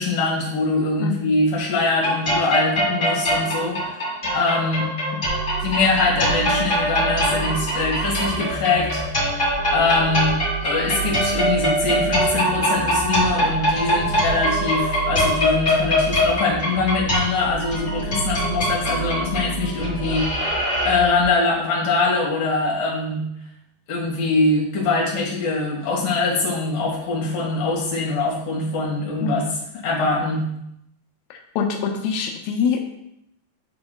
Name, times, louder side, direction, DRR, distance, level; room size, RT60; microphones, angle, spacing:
voice 1, 0.0-5.2 5.6-9.1 9.4-20.5 20.8-23.2 23.9-29.4 29.8-30.5, left 3 dB, 60° left, -3 dB, 3.0 m, -23 dB
sound 1, 2.0-20.9, equal, 25° left, 1.3 m, -23 dB
sound 2, 5.3-21.3, right 8 dB, 90° right, 3.2 m, -32 dB
voice 2, 31.3-32.8, left 6 dB, 85° left, 2 dB, 2.0 m, -24 dB
11.5 x 3.8 x 2.3 m, 0.79 s
omnidirectional pair, 4.9 m